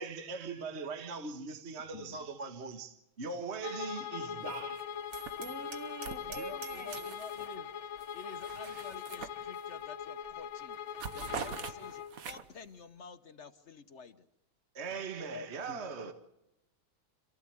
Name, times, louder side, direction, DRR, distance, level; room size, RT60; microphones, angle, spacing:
voice 1, 0.0-4.9 14.7-16.1, right 5 dB, 35° right, 1.7 m, -40 dB
voice 2, 1.9-2.3 4.0-4.1 4.4-4.5 6.2-7.7 8.1-14.3 15.7-15.9, left 5 dB, 50° left, 0.9 m, -50 dB
Bowed string instrument, 3.6-12.1, left 8 dB, 75° left, 1.8 m, -41 dB
sound 1, 4.5-4.8 5.1-7.6 8.0-9.9 10.2-10.5 10.7-12.7, right 6 dB, 50° right, 1.4 m, -45 dB
Hammer, 5.1-7.2, right 8 dB, 70° right, 2.7 m, -48 dB
voice 3, 5.4-7.1 15.2-15.5, equal, 15° left, 0.5 m, -44 dB
27.0 x 15.5 x 8.7 m
omnidirectional pair, 2.3 m